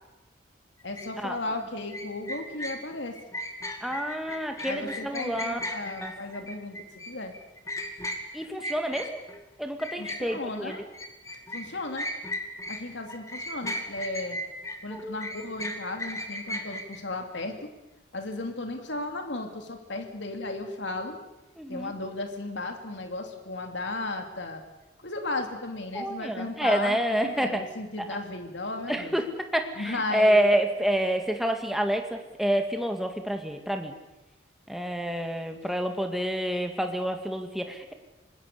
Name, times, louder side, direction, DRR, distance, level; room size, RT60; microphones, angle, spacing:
voice 1, 0.8-3.2 4.7-6.8 7.1-7.3 10.0-10.8 11.5-12.1 12.7-14.4 14.8-17.7 18.1-21.2 21.7-24.6 25.0-29.2 29.8-30.4, left 2 dB, 70° left, 5 dB, 2.8 m, -35 dB
sound 1, 1.0-1.1 1.9-9.4 9.8-12.8 13.1-17.0, left 1 dB, 15° left, 2.1 m, -36 dB
voice 2, 3.8-5.6 6.0-6.1 8.3-9.2 9.6-10.8 14.9-15.2 21.6-21.9 25.9-27.6 28.1-28.2 28.9-29.2 29.5-33.9 34.7-37.9, equal, ahead, 4 dB, 2.0 m, -28 dB
26.0 x 20.5 x 6.8 m, 1.0 s
head